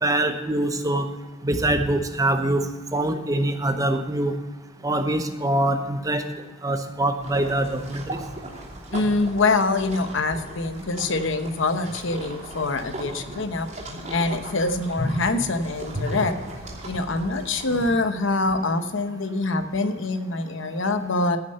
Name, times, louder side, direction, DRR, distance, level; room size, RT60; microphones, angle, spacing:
voice 1, 0.0-1.1 1.4-2.6 2.9-4.3 4.8-6.3 6.6-8.2, right 1 dB, 15° right, 7 dB, 0.8 m, -24 dB
sound 1, 7.2-17.9, equal, 35° right, 3.0 m, -36 dB
voice 2, 8.9-13.7 14.1-16.4 16.8-21.4, left 3 dB, 65° left, 9 dB, 0.9 m, -25 dB
15.0 x 6.5 x 5.6 m, 1.3 s
head